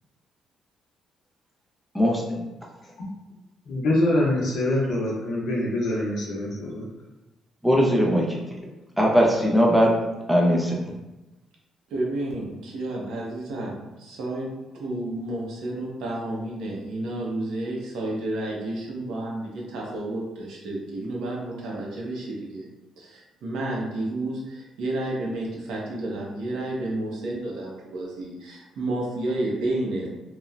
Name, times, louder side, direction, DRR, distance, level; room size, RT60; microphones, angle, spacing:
voice 1, 1.9-2.5 7.6-8.7 9.0-10.0 10.3-10.8, equal, 5° right, -2 dB, 0.4 m, -20 dB
voice 2, 3.6-6.9, left 1 dB, 65° left, -4 dB, 0.6 m, -24 dB
voice 3, 11.9-14.5 14.7-22.6 23.0-30.1, right 1 dB, 85° right, -3 dB, 0.7 m, -31 dB
2.9 x 2.0 x 2.4 m, 1.0 s
cardioid pair, 170°, 0 cm